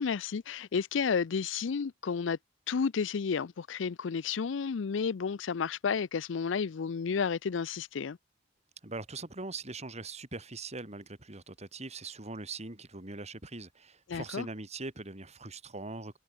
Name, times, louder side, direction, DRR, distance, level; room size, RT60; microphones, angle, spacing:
voice 1, 0.0-2.4 2.7-8.2 14.1-14.5, left 6 dB, 75° left, 0.5 m, -31 dB
voice 2, 8.8-16.2, right 3 dB, 35° right, 3.4 m, -41 dB
head